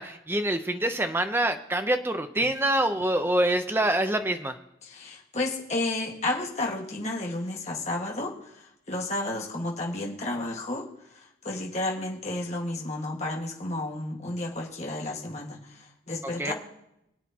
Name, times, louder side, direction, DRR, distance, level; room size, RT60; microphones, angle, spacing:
voice 1, 0.0-4.6 16.4-16.5, right 1 dB, 10° right, 7 dB, 0.7 m, -26 dB
voice 2, 4.8-16.5, left 2 dB, 35° left, -1 dB, 1.7 m, -32 dB
23.0 x 8.1 x 2.9 m, 0.82 s
head